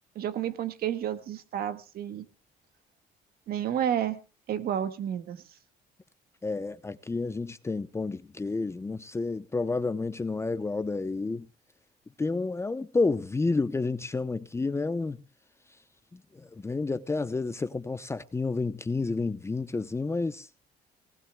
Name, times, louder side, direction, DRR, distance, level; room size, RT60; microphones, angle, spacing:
voice 1, 0.1-2.2 3.5-4.2 4.5-5.4, right 10 dB, 65° right, 1.7 m, -30 dB
voice 2, 6.4-11.5 12.2-15.2 16.1-20.5, left 3 dB, 15° left, 0.7 m, -30 dB
19.5 x 18.5 x 2.3 m
cardioid pair, 110°, 17 cm